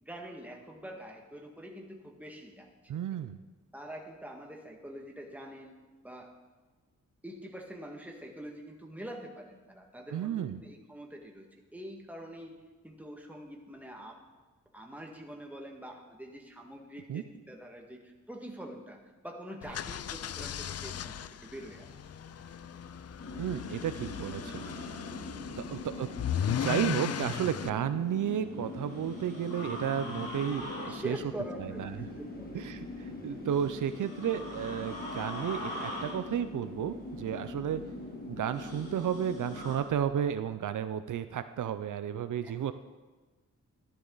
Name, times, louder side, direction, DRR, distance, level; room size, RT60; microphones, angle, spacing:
voice 1, 0.0-2.7 3.1-3.2 3.7-5.7 6.0-6.3 7.2-14.2 14.7-21.9 25.3-25.5 30.7-32.6 42.4-42.6, equal, 5° right, 1 dB, 1.8 m, -45 dB
voice 2, 2.9-3.4 10.1-10.6 17.1-17.2 23.4-25.0 25.6-26.1 26.4-31.2 31.6-32.0 32.5-37.8 38.3-42.7, right 9 dB, 75° right, 11 dB, 0.6 m, -33 dB
sound 1, 19.6-27.7, left 9 dB, 55° left, 0.4 m, -37 dB
sound 2, 21.6-40.4, left 1 dB, 30° left, 2.1 m, -56 dB
sound 3, 23.2-39.8, left 2 dB, 85° left, 4.8 m, -41 dB
14.5 x 12.0 x 4.0 m, 1.3 s
cardioid pair, 90°, 31 cm